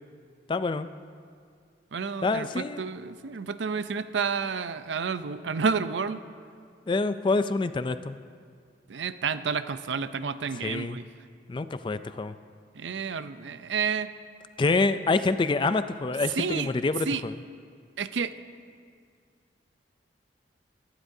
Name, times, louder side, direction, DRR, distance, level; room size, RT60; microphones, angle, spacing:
voice 1, 0.5-0.9 2.2-2.8 6.9-8.2 10.6-11.0 11.5-12.4 14.6-17.3, left 3 dB, 25° left, 12 dB, 0.3 m, -26 dB
voice 2, 1.9-6.2 8.9-11.0 12.7-14.1 16.4-16.7 17.1-17.2 18.0-18.3, right 5 dB, 85° right, 12 dB, 0.5 m, -30 dB
24.5 x 11.5 x 2.7 m, 2.2 s
head